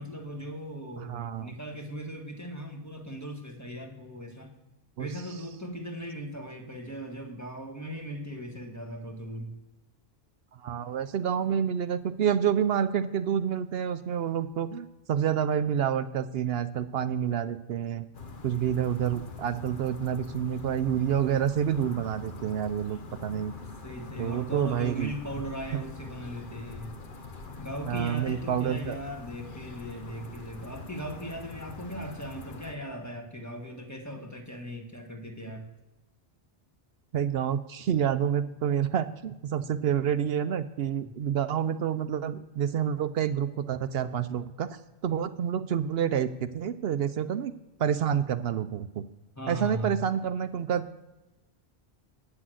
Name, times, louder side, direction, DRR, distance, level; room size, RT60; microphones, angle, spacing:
voice 1, 0.0-4.5 5.0-9.5 23.8-26.9 27.6-35.7 49.4-50.0, equal, 15° left, 1 dB, 1.6 m, -38 dB
voice 2, 1.0-1.5 5.0-5.1 10.5-18.1 18.4-23.5 24.2-25.1 25.7-25.8 27.9-29.0 37.1-47.5 47.8-49.0 49.5-51.0, right 9 dB, 70° right, 11 dB, 0.8 m, -28 dB
sound 1, 18.1-32.7, left 4 dB, 55° left, 1.0 m, -44 dB
9.7 x 6.1 x 7.8 m, 1.0 s
omnidirectional pair, 1.1 m